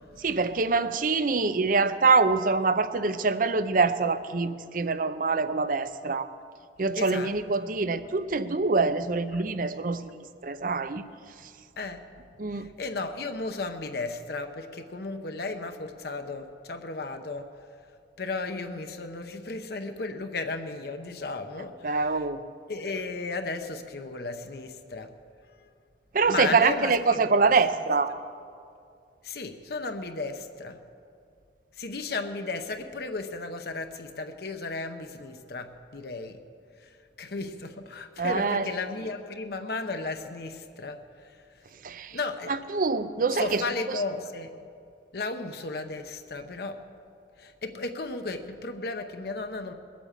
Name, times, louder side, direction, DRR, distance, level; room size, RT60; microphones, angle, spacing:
voice 1, 0.2-6.3 6.8-11.0 12.4-12.7 21.8-22.4 26.1-28.1 38.2-38.6 41.8-42.2 42.7-43.6 43.9-44.0, right 4 dB, 50° right, 12 dB, 0.6 m, -25 dB
voice 2, 6.9-7.3 7.6-7.7 9.3-9.4 11.8-12.0 12.5-17.5 18.2-22.3 22.7-25.2 25.6-25.7 26.3-27.5 29.2-30.8 31.8-36.4 36.8-41.6 42.1-42.6 43.3-44.7 45.1-46.9 47.4-49.7, left 3 dB, 60° left, 6 dB, 0.8 m, -35 dB
20.5 x 8.5 x 7.3 m, 2.3 s
head